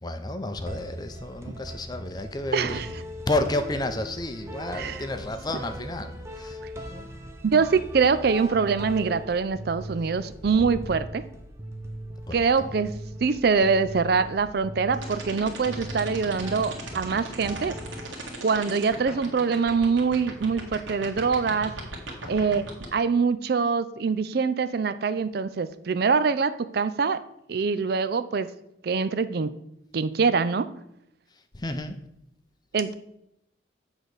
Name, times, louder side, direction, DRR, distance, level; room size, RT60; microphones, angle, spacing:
voice 1, 0.0-2.9 3.3-7.1 10.5-10.7 12.3-12.7 31.5-32.0, left 2 dB, 20° left, 8 dB, 0.6 m, -31 dB
sound 1, 0.7-18.5, right 1 dB, 15° right, 0.7 m, -39 dB
voice 2, 2.5-2.9 4.7-5.1 7.4-11.3 12.3-12.9 13.2-17.7 18.4-21.7 22.3-22.6 22.9-27.2 27.5-28.5 28.8-29.5 29.9-30.7 32.7-32.9, right 5 dB, 50° right, 12 dB, 0.4 m, -24 dB
sound 2, 14.9-22.8, right 3 dB, 80° right, 1.9 m, -37 dB
7.9 x 4.0 x 6.4 m, 0.79 s
head